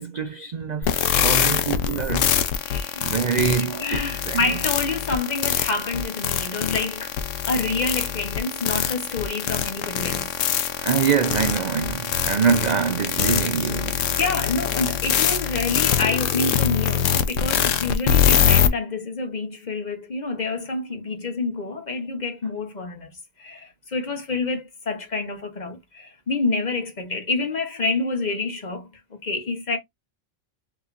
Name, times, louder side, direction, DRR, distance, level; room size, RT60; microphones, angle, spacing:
voice 1, 0.0-2.4 3.0-4.6 10.8-14.2, right 6 dB, 60° right, 0.4 m, -25 dB
sound 1, 0.8-18.7, left 9 dB, 80° left, 1.0 m, -23 dB
voice 2, 2.7-3.2 3.7-10.3 14.2-23.1 23.4-29.8, left 3 dB, 40° left, 0.9 m, -28 dB
5.8 x 2.9 x 2.5 m
omnidirectional pair, 1.3 m